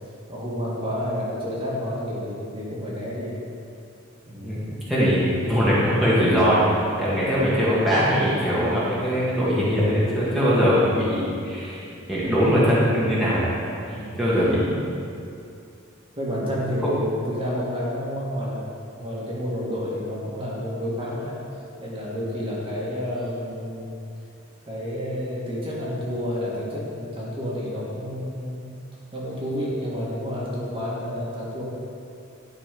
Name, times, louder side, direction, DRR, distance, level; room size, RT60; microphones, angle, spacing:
voice 1, 0.3-3.4 4.3-4.6 7.0-7.1 13.9-14.1 16.2-18.7 18.9-21.4 21.8-23.9 24.7-28.7 29.1-31.6, equal, 25° right, -6 dB, 1.6 m, -30 dB
voice 2, 4.4-6.6 7.0-11.8 12.1-13.6 13.8-14.8, equal, ahead, -10 dB, 1.5 m, -21 dB
11.0 x 4.1 x 5.2 m, 2.5 s
head